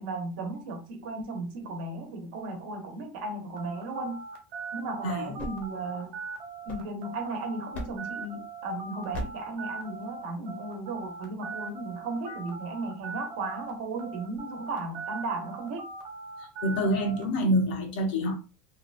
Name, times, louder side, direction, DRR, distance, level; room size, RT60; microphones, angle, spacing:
voice 1, 0.0-4.2 4.7-6.2 6.7-15.9, right 2 dB, 85° right, 0.9 m, -35 dB
sound 1, 3.6-13.7 14.0-17.2, right 4 dB, 50° right, 0.7 m, -41 dB
voice 2, 5.0-5.3 16.6-18.4, equal, 85° left, 0.7 m, -26 dB
sound 2, 5.4-7.3 7.7-8.2 9.1-9.6, left 1 dB, 30° left, 0.6 m, -40 dB
2.9 x 2.2 x 2.5 m
cardioid pair, 175°, 5 cm